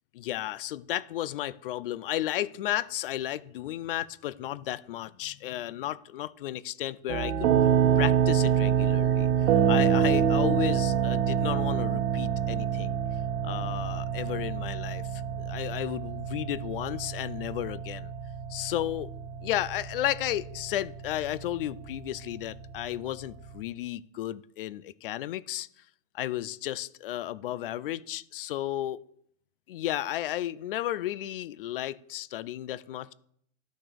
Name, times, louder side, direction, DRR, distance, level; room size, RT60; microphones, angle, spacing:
voice 1, 0.1-7.5 8.0-13.0 13.4-18.1 18.5-19.1 19.4-25.7 26.1-29.0 29.7-33.1, left 13 dB, 55° left, 19 dB, 0.6 m, -33 dB
sound 1, 7.1-23.6, right 8 dB, 75° right, 1.5 m, -27 dB
12.5 x 6.3 x 6.9 m, 0.67 s
supercardioid pair, 175°, 33 cm